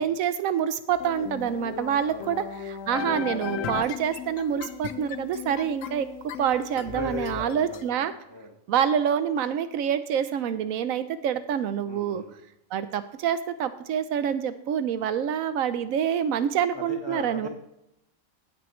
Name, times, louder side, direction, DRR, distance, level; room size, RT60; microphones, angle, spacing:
voice 1, 0.0-8.1 8.7-12.2 12.7-17.5, right 8 dB, 80° right, 12 dB, 1.0 m, -27 dB
sound 1, 1.0-7.8, left 7 dB, 75° left, 1.0 m, -36 dB
voice 2, 6.9-8.5 11.8-12.3 16.7-17.5, left 2 dB, 20° left, 1 dB, 1.3 m, -37 dB
16.5 x 6.1 x 3.1 m, 0.80 s
omnidirectional pair, 1.4 m